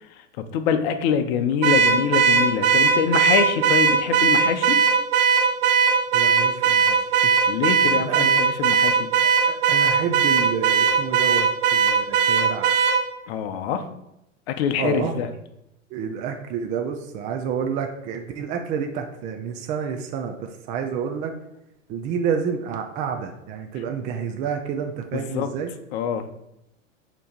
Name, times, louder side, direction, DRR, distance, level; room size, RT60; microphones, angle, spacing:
voice 1, 0.5-4.8 7.5-9.1 13.3-13.8 14.5-15.3 25.1-25.5 25.9-26.3, left 7 dB, 50° left, 8 dB, 0.8 m, -24 dB
Car / Alarm, 1.6-13.0, right 6 dB, 45° right, 0.9 m, -19 dB
voice 2, 6.1-7.3 7.7-8.3 9.7-12.7 14.8-15.2 15.9-21.3 21.9-25.7, right 7 dB, 20° right, 4 dB, 0.4 m, -29 dB
6.8 x 3.0 x 5.0 m, 0.85 s
hypercardioid pair, 110°, 39 cm